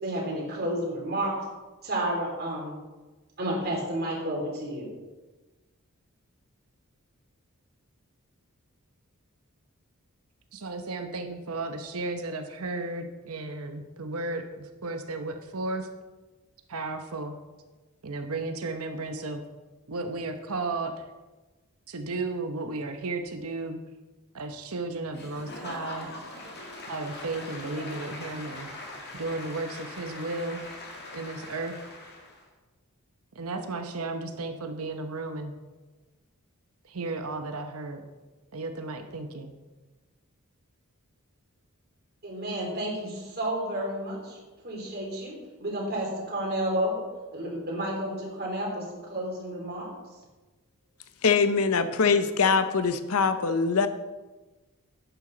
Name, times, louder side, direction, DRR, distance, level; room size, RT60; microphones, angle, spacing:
voice 1, 0.0-1.3 1.8-2.8 3.4-4.9 42.2-44.4 44.6-47.0 47.3-49.9, right 1 dB, 45° right, -2 dB, 3.2 m, -31 dB
voice 2, 10.5-15.9 16.7-17.4 18.0-19.4 19.9-21.0 21.9-23.8 24.3-26.1 26.8-28.7 29.1-30.7 31.1-31.8 33.3-35.5 36.8-38.0 38.5-39.5, right 3 dB, 80° right, 6 dB, 0.9 m, -34 dB
Applause / Crowd, 25.1-32.4, left 2 dB, 45° left, 2.0 m, -41 dB
voice 3, 51.2-53.9, left 5 dB, 80° left, 10 dB, 0.8 m, -23 dB
11.5 x 9.1 x 3.9 m, 1.2 s
head